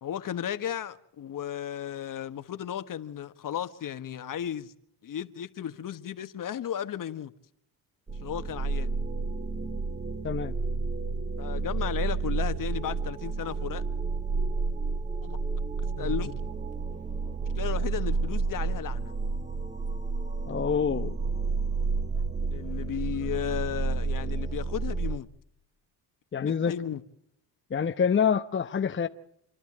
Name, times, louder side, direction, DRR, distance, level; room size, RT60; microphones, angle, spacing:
voice 1, 0.0-4.7 5.0-7.3 8.2-8.9 11.4-13.8 15.2-15.4 16.0-16.3 17.6-19.1 22.5-25.3 26.7-27.0, left 10 dB, 50° left, 1.5 m, -34 dB
sound 1, 8.1-25.2, right 4 dB, 15° right, 1.3 m, -30 dB
voice 2, 16.0-16.3 20.5-21.1 26.3-26.7 27.7-29.1, left 7 dB, 25° left, 1.0 m, -27 dB
28.0 x 11.5 x 8.7 m
cardioid pair, 95°, 42 cm